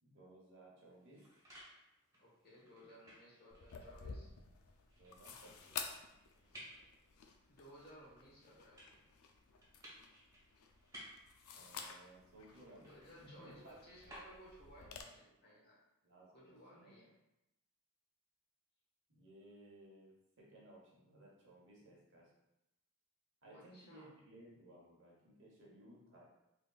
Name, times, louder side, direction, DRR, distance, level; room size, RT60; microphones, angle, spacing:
voice 1, 0.0-1.2 4.9-5.8 11.5-12.9 13.4-13.7 16.0-16.8 19.1-20.1 20.4-22.3 23.4-26.3, right 1 dB, 55° right, -4 dB, 1.1 m, -60 dB
sound 1, 0.8-14.8, equal, 15° right, 1.2 m, -60 dB
voice 2, 2.2-4.3 6.5-6.8 7.5-9.1 12.8-15.8 16.3-17.1 23.4-24.2, equal, 45° left, -5 dB, 1.3 m, -59 dB
sound 2, 3.5-15.0, left 6 dB, 80° left, 0.4 m, -52 dB
3.7 x 3.4 x 2.4 m, 0.89 s
head